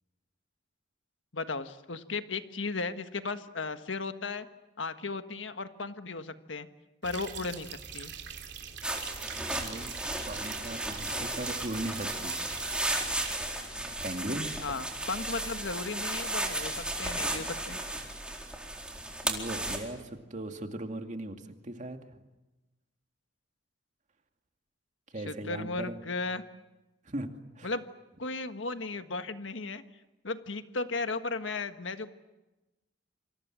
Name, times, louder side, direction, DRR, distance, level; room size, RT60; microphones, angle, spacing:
voice 1, 1.3-4.5 4.8-6.7 7.0-8.1 14.6-17.8 25.2-26.4 27.6-27.8 28.2-29.8 30.2-32.1, left 3 dB, 85° left, 9 dB, 1.5 m, -35 dB
sound 1, 7.0-13.4, right 7 dB, 65° right, 3.4 m, -43 dB
sound 2, 8.8-19.8, right 1 dB, 5° right, 4.1 m, -34 dB
voice 2, 9.3-9.9 10.3-12.4 14.0-14.6 19.2-21.4 21.6-22.0 25.1-26.0 27.0-27.3 27.6-27.7, right 1 dB, 40° right, 5 dB, 2.4 m, -38 dB
27.5 x 26.5 x 7.6 m, 1.0 s
head